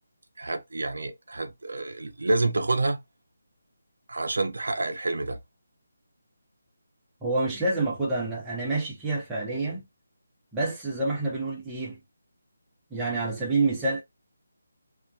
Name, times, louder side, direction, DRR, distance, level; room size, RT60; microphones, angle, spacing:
voice 1, 0.4-3.0 4.1-5.4, right 2 dB, 75° right, 0.5 m, -28 dB
voice 2, 7.2-9.8 10.5-12.0 12.9-14.0, right 3 dB, 10° right, 0.7 m, -28 dB
2.4 x 2.2 x 2.6 m
figure-of-eight pair, 165°, 0 cm